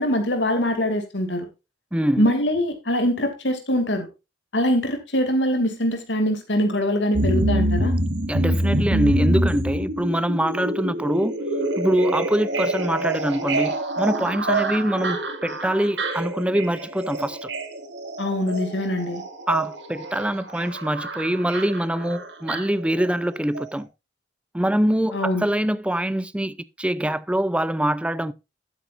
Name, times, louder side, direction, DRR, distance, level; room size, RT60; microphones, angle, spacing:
voice 1, 0.0-1.5 2.2-4.1 4.5-7.9 18.2-19.2 25.1-25.4, equal, 75° left, 2.6 m, -23 dB
voice 2, 1.9-2.3 8.3-11.3 11.8-17.5 19.5-23.9 24.5-28.3, right 1 dB, 5° right, 0.5 m, -24 dB
sound 1, 7.1-23.3 23.5-23.6, right 1 dB, 75° right, 2.1 m, -26 dB
12.0 x 8.5 x 2.6 m
head